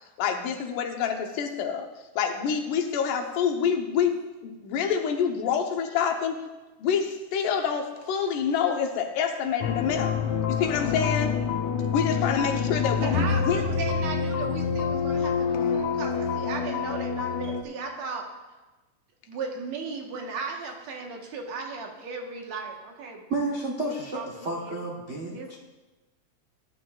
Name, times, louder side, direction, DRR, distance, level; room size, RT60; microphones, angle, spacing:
voice 1, 0.2-1.9 2.2-4.2 4.6-6.4 6.8-10.2 10.5-11.4 11.9-13.6, left 7 dB, 90° left, 3 dB, 2.6 m, -27 dB
sound 1, 9.6-17.6, left 6 dB, 75° left, 2.1 m, -27 dB
voice 2, 13.0-18.3 19.3-23.3 23.8-24.7 25.3-25.6, right 4 dB, 65° right, 1 dB, 2.5 m, -36 dB
voice 3, 23.3-25.6, right 2 dB, 90° right, -3 dB, 0.6 m, -31 dB
19.0 x 10.5 x 2.4 m, 1.1 s
omnidirectional pair, 3.6 m